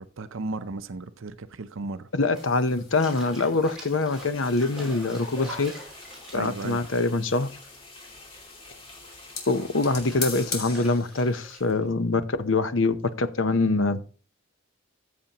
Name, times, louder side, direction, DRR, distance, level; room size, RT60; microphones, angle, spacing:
voice 1, 0.0-2.1 6.3-6.8, right 3 dB, 70° right, 0.6 m, -35 dB
voice 2, 2.1-5.7 6.3-7.5 9.5-14.0, left 3 dB, 65° left, 0.8 m, -24 dB
Bathtub (filling or washing), 2.2-8.1 8.3-11.9, right 1 dB, 5° right, 5.1 m, -44 dB
sound 1, 2.3-11.7, left 5 dB, 50° left, 3.5 m, -42 dB
sound 2, 4.1-10.5, left 2 dB, 25° left, 2.4 m, -48 dB
14.5 x 6.9 x 2.9 m
head